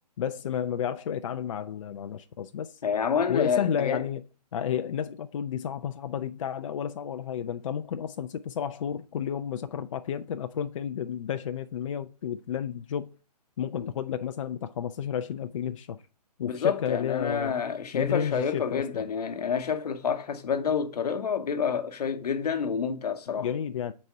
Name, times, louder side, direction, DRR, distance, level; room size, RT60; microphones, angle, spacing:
voice 1, 0.2-2.7 3.3-4.2 4.5-13.1 13.6-16.0 16.4-17.5 17.9-19.1 23.4-23.9, left 8 dB, 50° left, 0.4 m, -31 dB
voice 2, 2.8-4.0 13.8-13.9 16.4-23.5, left 6 dB, 65° left, 0.9 m, -28 dB
6.3 x 4.1 x 4.5 m
hypercardioid pair, 140°, 21 cm